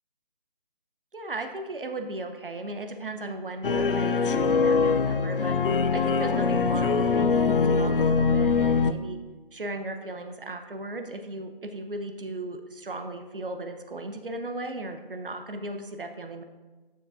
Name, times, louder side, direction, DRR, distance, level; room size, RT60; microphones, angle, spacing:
voice 1, 1.1-5.6 5.9-9.2 9.5-16.4, right 2 dB, 65° right, 6 dB, 0.8 m, -36 dB
sound 1, 3.6-8.9, left 5 dB, 65° left, 0.5 m, -23 dB
10.0 x 6.7 x 2.5 m, 1.2 s
figure-of-eight pair, 180°, 29 cm